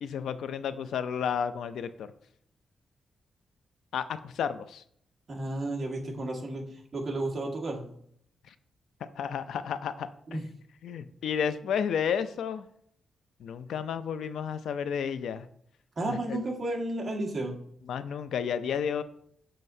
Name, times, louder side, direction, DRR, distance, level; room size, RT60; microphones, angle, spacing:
voice 1, 0.0-2.1 3.9-4.8 8.5-8.6 9.2-10.4 10.8-12.7 13.4-15.5 16.1-16.4 17.9-19.0, left 7 dB, 90° left, 12 dB, 0.4 m, -32 dB
voice 2, 5.3-7.8 10.3-10.4 16.0-17.5, right 2 dB, 30° right, -1 dB, 1.5 m, -32 dB
7.4 x 6.4 x 2.7 m, 0.67 s
wide cardioid pair, 165°, 0 cm